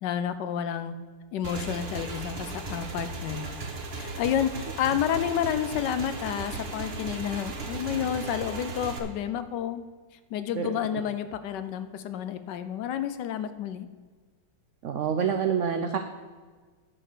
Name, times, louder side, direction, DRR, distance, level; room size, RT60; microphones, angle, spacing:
voice 1, 0.0-1.0 1.3-3.6 3.9-9.8 10.3-13.9, left 9 dB, 75° left, 11 dB, 1.2 m, -30 dB
Motorcycle / Engine, 1.4-9.0, right 3 dB, 40° right, 1.0 m, -36 dB
voice 2, 10.6-11.0 14.8-16.0, right 7 dB, 80° right, 7 dB, 0.6 m, -27 dB
9.7 x 5.4 x 6.7 m, 1.5 s
omnidirectional pair, 2.0 m